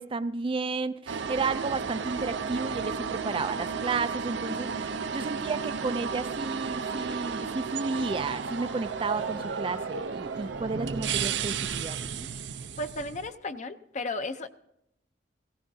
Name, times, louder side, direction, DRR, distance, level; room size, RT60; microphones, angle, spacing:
voice 1, 0.0-12.3, right 4 dB, 30° right, 12 dB, 0.4 m, -32 dB
sound 1, 1.1-13.3, right 5 dB, 75° right, 0.6 m, -33 dB
sound 2, 3.9-11.0, right 6 dB, 50° right, 0.8 m, -54 dB
sound 3, 5.4-12.2, equal, 75° left, 2.9 m, -58 dB
voice 2, 12.8-14.5, left 2 dB, 40° left, 9 dB, 0.6 m, -34 dB
18.0 x 16.5 x 2.7 m, 0.79 s
head